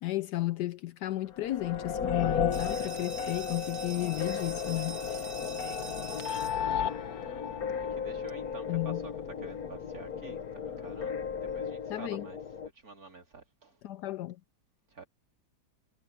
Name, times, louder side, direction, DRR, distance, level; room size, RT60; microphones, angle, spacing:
voice 1, 0.0-5.0 8.7-9.1 11.9-12.3 13.8-14.4, left 16 dB, 75° left, 1.0 m, -33 dB
sound 1, 1.3-12.7, left 7 dB, 55° left, 1.5 m, -34 dB
sound 2, 2.5-8.0, right 3 dB, 85° right, 4.3 m, -45 dB
voice 2, 5.1-6.6 7.9-9.1 9.4-11.2 11.5-12.4 12.8-13.8 14.9-15.0, right 3 dB, 50° right, 4.0 m, -49 dB
omnidirectional pair, 2.0 m